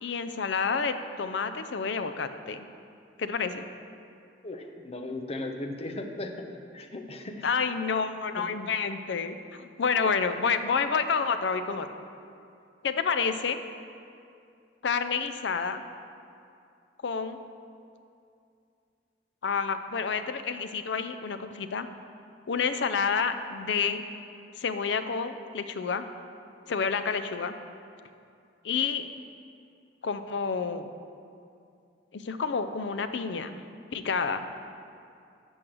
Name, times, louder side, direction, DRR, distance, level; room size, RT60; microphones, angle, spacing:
voice 1, 0.0-2.7 3.2-3.6 7.4-11.9 12.8-13.6 14.8-15.8 17.0-17.4 19.4-21.9 22.5-24.0 24.6-26.1 26.7-27.5 28.6-29.1 30.0-30.9 32.1-33.6 33.9-34.5, left 5 dB, 70° left, 10 dB, 0.5 m, -29 dB
voice 2, 4.4-6.4 6.7-7.5 8.3-8.4, left 2 dB, 35° left, 5 dB, 0.7 m, -37 dB
8.6 x 6.4 x 6.2 m, 2.5 s
head